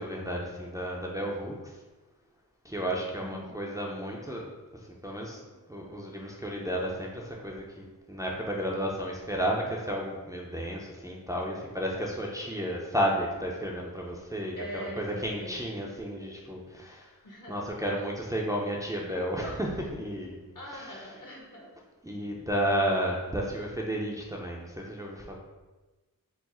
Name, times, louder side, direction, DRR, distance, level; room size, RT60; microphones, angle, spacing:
voice 1, 0.0-1.8 2.6-4.5 5.0-5.4 5.7-17.1 17.5-20.4 20.6-21.2 22.0-25.4, equal, 10° right, -2 dB, 0.5 m, -32 dB
voice 2, 3.1-3.6 14.6-15.7 17.2-17.6 20.5-21.7, equal, 55° left, -1 dB, 1.1 m, -42 dB
4.6 x 2.0 x 4.2 m, 1.2 s
wide cardioid pair, 85°, 37 cm